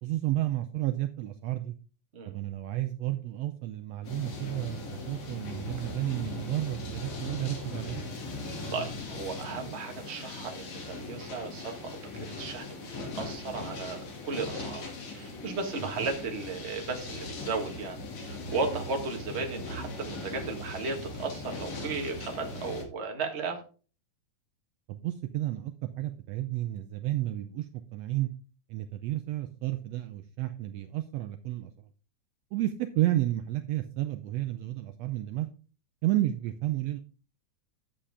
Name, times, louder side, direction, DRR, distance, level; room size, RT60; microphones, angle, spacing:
voice 1, 0.0-1.7 2.3-8.0 24.9-28.3 28.7-31.7 32.5-35.5 36.0-37.0, right 15 dB, 80° right, 8 dB, 1.6 m, -31 dB
sound 1, 4.0-22.8, left 2 dB, 65° left, 3.5 m, -39 dB
voice 2, 8.7-23.6, right 4 dB, 30° right, 3 dB, 1.3 m, -35 dB
9.9 x 7.8 x 3.5 m, 0.36 s
omnidirectional pair, 3.4 m